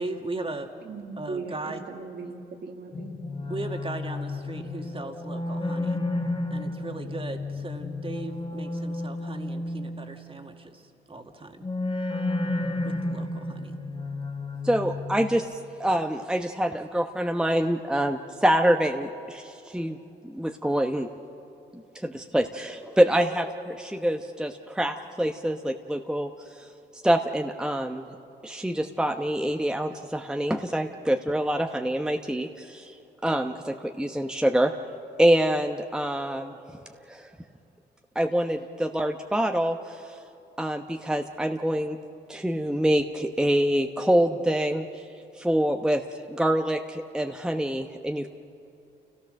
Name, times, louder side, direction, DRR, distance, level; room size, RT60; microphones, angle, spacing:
voice 1, 0.0-0.7 1.2-1.8 3.5-6.0 6.5-11.6 12.8-13.8, right 2 dB, 30° right, 4 dB, 2.1 m, -37 dB
voice 2, 0.8-3.1, right 3 dB, 55° right, 2 dB, 2.3 m, -38 dB
sound 1, 2.9-10.5 11.6-15.4, left 2 dB, 25° left, 1.3 m, -32 dB
voice 3, 14.6-15.5 15.8-20.0 20.2-21.1 21.9-26.3 27.0-28.0 28.4-32.9 33.2-34.7 35.2-36.5 37.1-37.3 38.1-40.2 40.6-42.0 42.3-44.9 45.4-46.0 46.3-48.3, right 1 dB, 5° right, 4 dB, 1.0 m, -25 dB
28.0 x 17.0 x 6.5 m, 2.8 s
cardioid pair, 65°, 19 cm